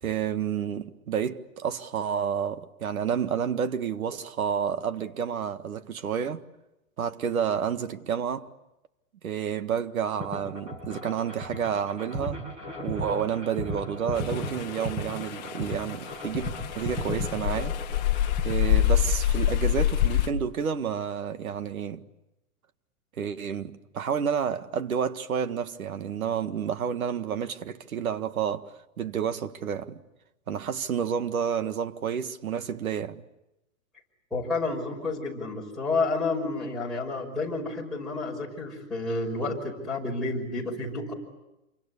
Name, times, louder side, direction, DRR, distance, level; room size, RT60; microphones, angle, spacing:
voice 1, 0.0-6.4 7.0-8.5 9.2-12.4 12.8-17.8 18.4-22.0 23.2-30.0 30.5-33.2, right 7 dB, 90° right, 1.8 m, -30 dB
sound 1, 10.2-19.1, equal, 15° right, 6.1 m, -35 dB
sound 2, 14.2-20.3, left 11 dB, 30° left, 1.4 m, -26 dB
voice 2, 34.3-41.1, left 3 dB, ahead, 5.7 m, -30 dB
28.0 x 25.0 x 8.4 m
hypercardioid pair, 170°, 41 cm